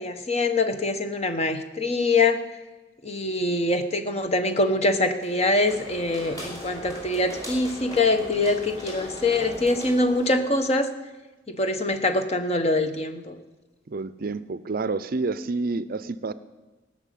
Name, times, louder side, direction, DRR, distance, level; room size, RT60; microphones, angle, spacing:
voice 1, 0.0-2.4 3.0-10.9 11.5-13.3, left 2 dB, 35° left, 8 dB, 1.0 m, -24 dB
sound 1, 5.2-10.7, left 1 dB, 20° left, 4.3 m, -39 dB
voice 2, 13.9-16.3, right 3 dB, 50° right, 15 dB, 0.5 m, -29 dB
17.5 x 6.2 x 9.2 m, 1.1 s
head